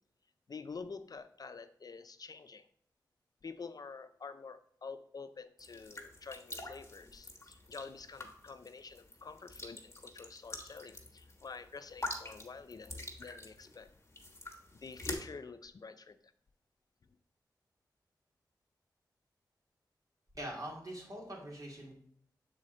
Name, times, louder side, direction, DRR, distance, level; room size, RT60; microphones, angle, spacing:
voice 1, 0.5-2.7 3.4-13.9 14.8-16.3, left 4 dB, 55° left, 11 dB, 0.4 m, -48 dB
sound 1, 5.6-15.1, left 2 dB, 35° left, 1.3 m, -46 dB
voice 2, 20.3-21.9, right 1 dB, 50° right, -2 dB, 2.3 m, -43 dB
6.3 x 4.1 x 3.8 m, 0.65 s
cardioid pair, 40°, 8 cm